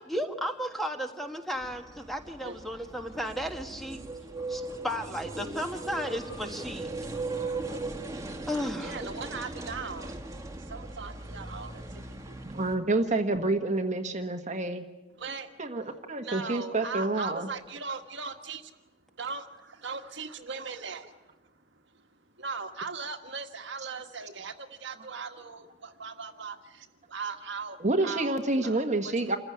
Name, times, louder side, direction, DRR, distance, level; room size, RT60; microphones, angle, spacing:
voice 1, 0.0-4.0 4.5-6.9 8.5-9.0, equal, ahead, 4 dB, 1.6 m, -34 dB
sound 1, 1.6-12.8, right 2 dB, 15° right, 1.9 m, -39 dB
voice 2, 8.8-10.2 10.6-12.4 15.2-15.5 16.2-18.8 19.2-21.4 21.9-22.1 22.4-29.4, right 4 dB, 60° right, 6 dB, 1.6 m, -39 dB
voice 3, 12.5-14.8 15.6-17.5 27.8-29.4, right 2 dB, 35° right, 5 dB, 1.4 m, -28 dB
28.0 x 15.5 x 9.6 m, 1.1 s
head